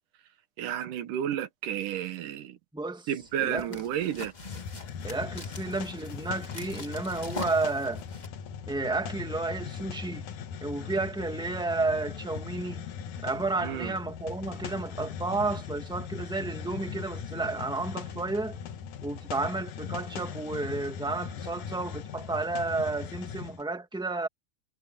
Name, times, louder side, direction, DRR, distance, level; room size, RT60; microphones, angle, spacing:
voice 1, 0.6-2.6 3.1-4.3 13.6-13.9, right 10 dB, 80° right, 2.9 m, -32 dB
voice 2, 2.7-3.1 3.4-3.8 5.0-8.0 8.7-10.3 10.6-12.9 13.2-18.6 19.0-24.3, right 3 dB, ahead, 1.2 m, -32 dB
sound 1, 3.2-8.3, left 3 dB, 25° left, 0.9 m, -43 dB
Hiss, 4.4-23.6, left 7 dB, 70° left, 2.9 m, -39 dB
omnidirectional pair, 3.7 m